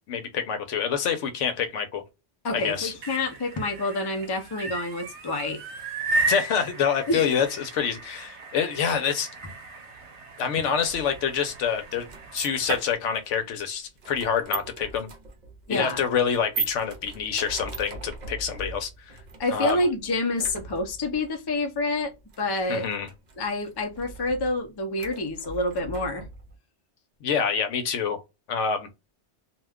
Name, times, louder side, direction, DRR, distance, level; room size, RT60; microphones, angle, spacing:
voice 1, 0.1-2.0 2.5-2.9 6.3-9.3 10.4-15.1 15.7-19.2 19.5-19.8 22.7-23.1 27.2-28.2 28.5-28.9, left 7 dB, 90° left, 1.0 m, -27 dB
voice 2, 2.4-5.6 7.1-7.3 15.7-16.0 19.4-22.1 22.4-22.9 23.4-26.3, left 2 dB, 30° left, 0.4 m, -27 dB
sound 1, 2.8-12.9, right 3 dB, 75° right, 0.9 m, -34 dB
sound 2, 10.8-26.6, right 4 dB, 45° right, 0.6 m, -40 dB
2.4 x 2.2 x 3.4 m
omnidirectional pair, 1.2 m